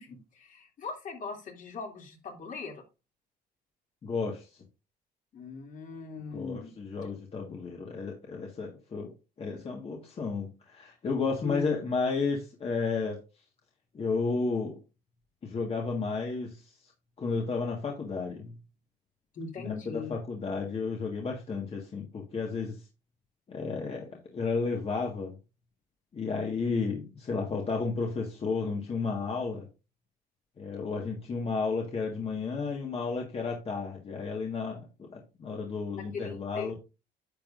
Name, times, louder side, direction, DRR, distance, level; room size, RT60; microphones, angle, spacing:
voice 1, 0.0-2.8 5.3-6.7 11.4-11.7 19.3-20.2 36.0-36.8, left 4 dB, 50° left, 2 dB, 2.9 m, -40 dB
voice 2, 4.0-4.6 6.3-9.1 9.4-13.2 13.9-14.8 15.4-16.9 17.2-18.5 19.6-22.8 23.5-25.3 26.1-29.7 30.6-36.7, left 4 dB, 35° left, 1 dB, 1.7 m, -32 dB
10.5 x 7.2 x 2.6 m, 0.28 s
cardioid pair, 110°, 17 cm